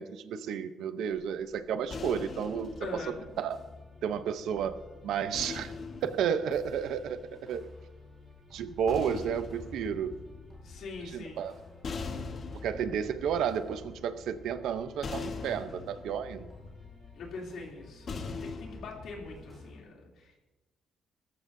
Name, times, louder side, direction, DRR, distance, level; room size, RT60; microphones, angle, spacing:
voice 1, 0.0-3.6 4.0-4.8 5.0-5.7 6.0-7.6 8.5-10.2 11.1-11.5 12.6-16.5, right 8 dB, 80° right, 10 dB, 0.7 m, -32 dB
sound 1, 1.1-4.4 5.3-7.6 8.6-19.6, left 4 dB, 40° left, 1.1 m, -43 dB
sound 2, 2.1-19.8, left 2 dB, 10° left, 4.5 m, -54 dB
voice 2, 2.8-3.2 10.6-11.5 17.1-20.4, left 3 dB, 65° left, -1 dB, 3.0 m, -43 dB
22.5 x 14.0 x 2.7 m, 1.2 s
cardioid pair, 155°, 0 cm